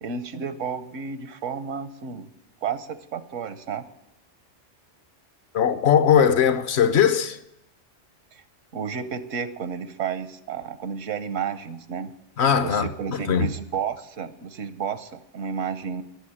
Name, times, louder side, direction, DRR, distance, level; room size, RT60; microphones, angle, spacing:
voice 1, 0.0-2.3 2.6-3.8 8.3-8.4 8.7-12.1 12.6-16.0, right 6 dB, 85° right, 1.3 m, -31 dB
voice 2, 5.5-7.4 12.4-13.5, left 8 dB, 65° left, 1.0 m, -20 dB
12.5 x 7.0 x 10.0 m
omnidirectional pair, 1.3 m